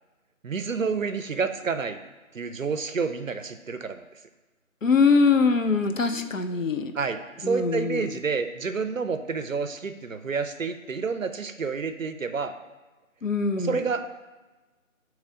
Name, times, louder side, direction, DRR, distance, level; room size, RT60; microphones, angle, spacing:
voice 1, 0.4-2.0 2.3-4.0 6.5-6.7 6.9-12.6 13.6-14.1, right 5 dB, 65° right, 9 dB, 0.6 m, -29 dB
voice 2, 4.8-6.9 7.4-8.1 13.2-13.8, left 4 dB, 65° left, 6 dB, 0.6 m, -22 dB
8.3 x 3.1 x 3.7 m, 1.2 s
figure-of-eight pair, 170°, 42 cm